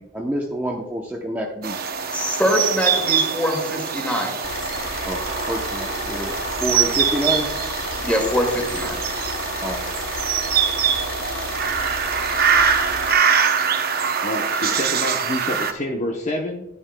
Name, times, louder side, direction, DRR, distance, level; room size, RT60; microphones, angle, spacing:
voice 1, 0.0-1.8 5.0-7.5 9.6-9.9, equal, 10° right, -1 dB, 0.7 m, -28 dB
sound 1, 1.6-15.7, right 7 dB, 50° right, 0.7 m, -23 dB
voice 2, 2.1-4.3 8.0-9.0, equal, 5° left, 1 dB, 2.0 m, -23 dB
Car / Idling, 4.4-13.1, left 4 dB, 80° left, 0.9 m, -33 dB
voice 3, 14.2-16.7, left 1 dB, 35° left, 2 dB, 0.7 m, -28 dB
11.0 x 11.0 x 2.2 m, 0.91 s
head